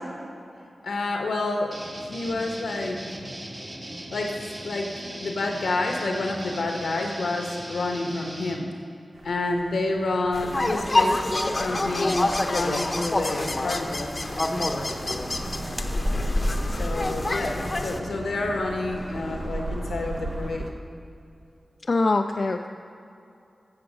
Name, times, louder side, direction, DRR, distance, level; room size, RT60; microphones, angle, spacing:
voice 1, 0.8-1.7 2.0-3.0 4.1-4.4 4.6-8.7 9.2-14.1 16.8-20.7, left 2 dB, 85° left, 2 dB, 1.0 m, -29 dB
sound 1, 1.7-8.6, right 1 dB, 45° right, 1.3 m, -38 dB
sound 2, 9.1-20.7, right 1 dB, 70° right, 0.9 m, -38 dB
sound 3, 10.3-18.0, left 2 dB, 40° left, 0.7 m, -26 dB
voice 2, 21.9-22.7, left 3 dB, 60° left, 4 dB, 0.3 m, -23 dB
7.8 x 7.0 x 6.1 m, 2.6 s
cardioid pair, 40°, 0 cm